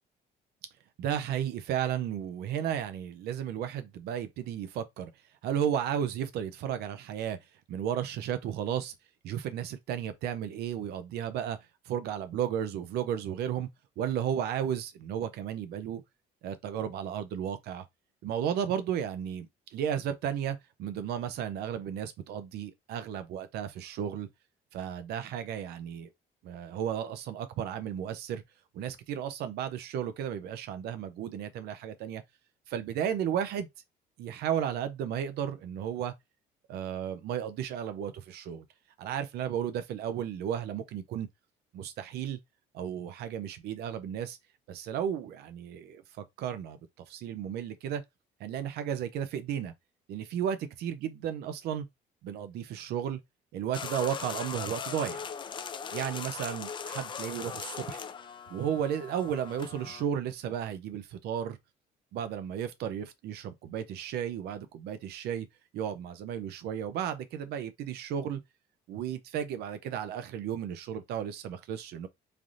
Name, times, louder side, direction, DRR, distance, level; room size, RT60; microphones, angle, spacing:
voice 1, 1.0-5.1 5.4-7.4 7.7-8.9 9.2-11.6 11.9-13.7 14.0-16.0 16.4-17.8 18.2-24.3 24.7-26.1 26.4-28.4 28.7-32.2 32.7-33.7 34.2-36.1 36.7-38.6 39.0-41.3 41.7-42.4 42.7-44.4 44.7-46.8 47.1-48.0 48.4-49.7 50.1-51.9 52.2-53.2 53.5-55.2 55.9-58.0 58.5-61.6 62.1-65.5 65.7-68.4 68.9-72.1, right 9 dB, 75° right, 0.5 m, -34 dB
sound 1, 53.7-60.0, left 6 dB, 30° left, 0.4 m, -39 dB
3.3 x 2.6 x 2.5 m
cardioid pair, 110°, 17 cm